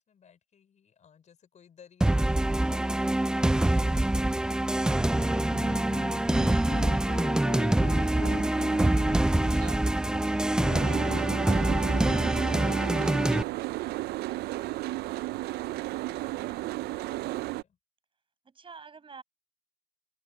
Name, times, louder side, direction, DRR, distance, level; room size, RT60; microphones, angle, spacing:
voice 1, 0.0-13.5 14.5-15.1 15.4-17.8, left 7 dB, 45° left, 5.5 m, -57 dB
sound 1, 2.0-13.4, right 1 dB, 5° right, 0.3 m, -25 dB
Wind instrument woodwind instrument, 5.1-10.7, left 13 dB, 75° left, 1.5 m, -44 dB
voice 2, 5.6-6.0 18.4-19.2, right 5 dB, 30° right, 7.2 m, -51 dB
Boat Water vehicle, 7.8-17.6, right 18 dB, 70° right, 0.4 m, -35 dB
cardioid pair, 110°, 17 cm